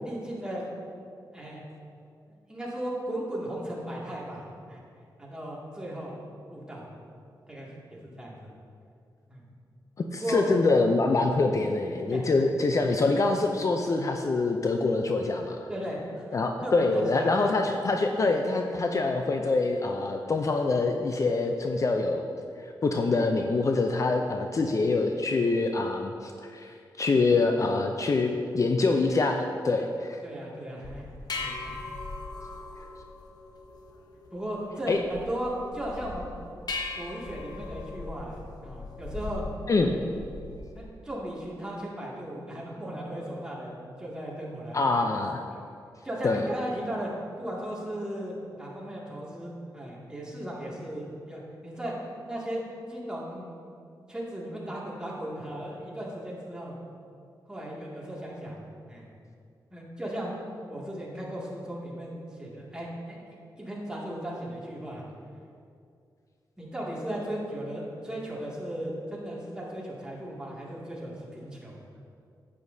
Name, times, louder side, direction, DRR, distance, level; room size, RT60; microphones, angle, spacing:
voice 1, 0.0-0.6 1.3-1.6 2.3-4.8 5.2-6.2 6.5-6.9 7.5-8.5 9.3-9.4 10.2-10.5 12.1-12.3 15.7-16.3 16.6-17.5 30.2-31.1 31.4-31.8 34.3-36.3 36.9-39.5 40.7-45.1 45.5-45.6 46.0-47.1 47.4-51.9 52.3-52.6 52.9-53.6 54.1-56.7 57.5-58.6 58.9-59.1 59.7-60.4 60.7-63.2 63.6-65.0 66.6-71.8, right 1 dB, 10° right, -5 dB, 2.2 m, -36 dB
voice 2, 10.0-15.7 16.3-22.3 22.6-30.2 34.9-35.0 39.7-40.0 44.7-45.4 46.2-46.4, left 3 dB, 45° left, 4 dB, 0.5 m, -25 dB
sound 1, 30.8-40.8, left 3 dB, 60° left, 1.0 m, -39 dB
10.5 x 8.5 x 2.7 m, 2.4 s
cardioid pair, 85°, 8 cm